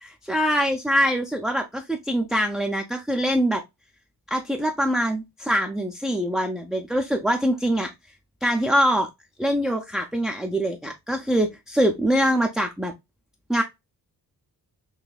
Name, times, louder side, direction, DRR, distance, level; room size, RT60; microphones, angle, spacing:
voice 1, 0.0-3.6 4.3-7.9 8.4-9.1 9.4-12.9 13.5-13.6, equal, ahead, 0.4 m, -23 dB
4.0 x 2.6 x 2.3 m
cardioid pair, 75°, 39 cm